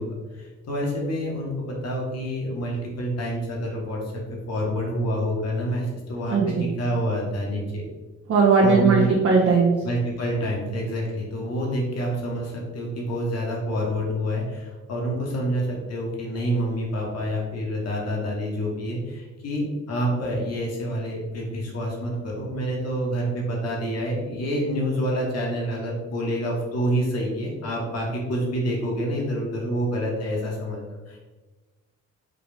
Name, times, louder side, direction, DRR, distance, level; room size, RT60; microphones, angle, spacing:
voice 1, 0.0-4.0 4.3-7.8 8.6-9.1 9.8-31.2, equal, 55° left, -2 dB, 1.2 m, -27 dB
voice 2, 6.3-6.6 8.3-9.7, right 5 dB, 50° right, -2 dB, 0.7 m, -18 dB
3.8 x 2.4 x 3.4 m, 1.3 s
cardioid pair, 90°, 30 cm